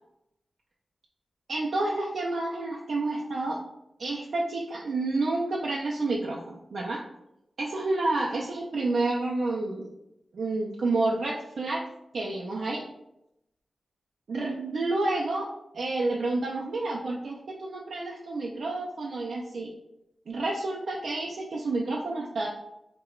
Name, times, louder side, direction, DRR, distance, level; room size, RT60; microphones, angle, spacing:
voice 1, 1.5-3.6 4.0-7.0 7.6-9.9 10.3-11.8 12.1-12.8 14.3-19.7 20.3-22.5, right 2 dB, 75° right, -3 dB, 0.4 m, -29 dB
4.7 x 2.2 x 2.3 m, 0.85 s
wide cardioid pair, 140°, 0 cm